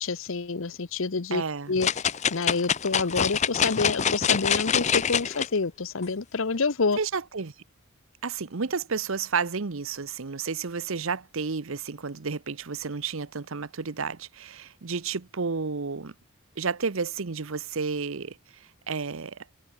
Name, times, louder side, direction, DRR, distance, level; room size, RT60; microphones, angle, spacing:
voice 1, 0.0-1.4 1.7-1.9 2.3-7.0, left 4 dB, 65° left, 0.8 m, -27 dB
voice 2, 1.3-1.7 7.0-7.5 8.2-16.1 16.6-19.4, right 5 dB, 65° right, 0.8 m, -31 dB
sound 1, 1.8-5.5 6.0-6.1, left 7 dB, 30° left, 0.6 m, -25 dB
head